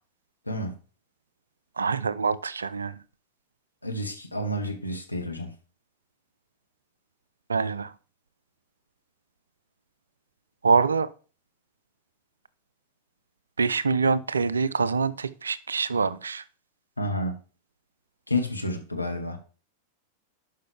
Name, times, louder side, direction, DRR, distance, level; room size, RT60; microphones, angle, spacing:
voice 1, 0.5-0.8 3.8-5.6 17.0-17.3 18.3-19.4, left 1 dB, 85° left, 1.3 m, -30 dB
voice 2, 1.8-3.0 7.5-7.9 10.6-11.1 13.6-16.4, right 5 dB, 75° right, 0.4 m, -25 dB
11.5 x 5.6 x 3.4 m
figure-of-eight pair, 90°, 0 cm